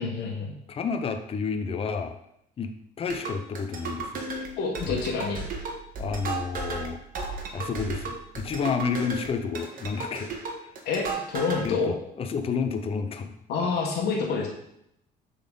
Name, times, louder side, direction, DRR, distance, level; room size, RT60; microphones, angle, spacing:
voice 1, 0.0-0.5 4.6-5.4 10.8-11.9 13.5-14.5, left 4 dB, 75° left, -1 dB, 1.3 m, -27 dB
voice 2, 0.7-2.2 2.6-4.2 4.9-5.0 6.0-7.0 7.5-10.3 10.6-10.7 11.6-13.3, left 5 dB, 35° left, 7 dB, 0.6 m, -30 dB
sound 1, 3.1-11.7, right 3 dB, 55° right, 1.2 m, -34 dB
7.1 x 3.9 x 3.9 m, 0.77 s
cardioid pair, 110°, 17 cm